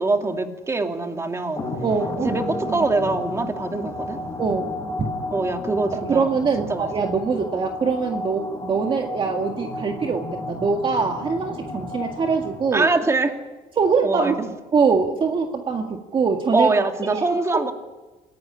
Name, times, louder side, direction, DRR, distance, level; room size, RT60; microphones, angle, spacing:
voice 1, 0.0-1.7 2.2-4.2 5.3-6.3 6.6-6.9 12.7-13.4 14.0-14.3 16.5-17.7, right 3 dB, 20° right, 4 dB, 2.5 m, -23 dB
sound 1, 1.6-12.9, left 2 dB, 25° left, 7.1 m, -32 dB
voice 2, 1.8-2.9 4.4-5.1 5.9-12.9 13.8-16.7 17.1-17.7, right 5 dB, 35° right, 3 dB, 1.9 m, -23 dB
27.5 x 17.5 x 10.0 m, 1.2 s
cardioid pair, 135°, 14 cm